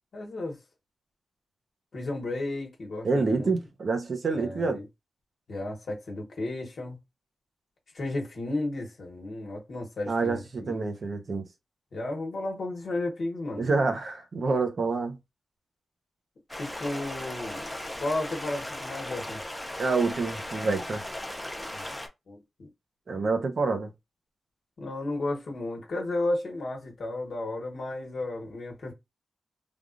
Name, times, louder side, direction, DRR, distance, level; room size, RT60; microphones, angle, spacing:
voice 1, 0.1-0.6 1.9-3.5 4.3-4.8 5.5-7.0 7.9-10.9 11.9-13.7 16.6-17.7 18.0-19.4 21.7-21.9 22.3-22.7 24.8-28.9, left 2 dB, 60° left, 1.1 m, -33 dB
voice 2, 3.0-4.8 10.1-11.5 13.6-15.2 19.8-21.0 23.1-23.9, right 3 dB, 50° right, 0.7 m, -27 dB
Stream, 16.5-22.1, left 1 dB, 10° left, 0.5 m, -37 dB
3.4 x 2.3 x 2.4 m
wide cardioid pair, 170°, 0 cm